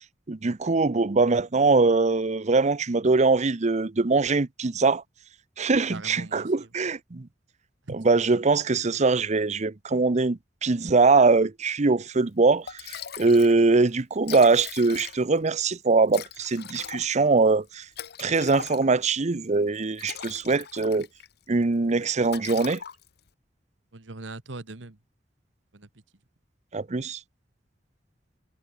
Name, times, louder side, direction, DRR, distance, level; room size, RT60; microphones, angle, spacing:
voice 1, 0.3-5.0 5.6-7.3 7.9-17.9 18.2-21.1 21.5-22.8 26.7-27.2, right 3 dB, 40° right, 0.7 m, -22 dB
voice 2, 5.9-6.7 7.9-8.1 23.9-25.0 25.7-25.9, right 2 dB, 80° right, 1.4 m, -40 dB
Liquid, 12.3-12.4 12.7-13.6 13.9-14.0 14.2-15.4 16.1-19.1 19.8-21.3 21.6-21.9 22.2-23.3, left 8 dB, 60° left, 1.0 m, -40 dB
head